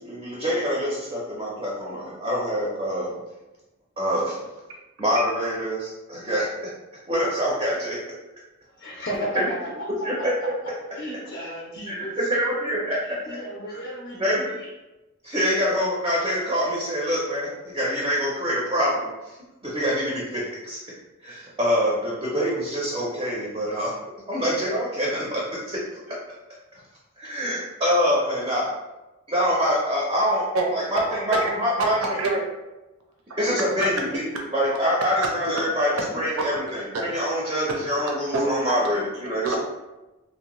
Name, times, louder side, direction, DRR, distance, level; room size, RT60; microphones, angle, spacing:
voice 1, 0.0-3.1 4.0-4.4 5.0-6.5 7.1-8.0 10.0-10.3 11.9-13.0 13.7-13.8 14.2-14.5 15.2-19.4 19.6-20.8 21.2-23.9 24.3-25.8 26.1-26.2 27.2-28.7 29.3-30.5 30.9-31.9 33.4-34.2 34.5-35.9 36.1-39.6, equal, 20° right, -5 dB, 0.4 m, -25 dB
voice 2, 8.7-9.5 10.2-10.3 10.9-12.2 13.0-14.7, equal, 45° left, -4 dB, 0.4 m, -34 dB
voice 3, 30.5-31.0 31.3-31.5 31.8-32.4 33.3-33.9 35.2-35.3 36.9-37.0 37.7-37.8 38.3-38.9 39.4-39.6, right 2 dB, 70° right, 1 dB, 0.5 m, -26 dB
2.6 x 2.1 x 2.9 m, 1.1 s
head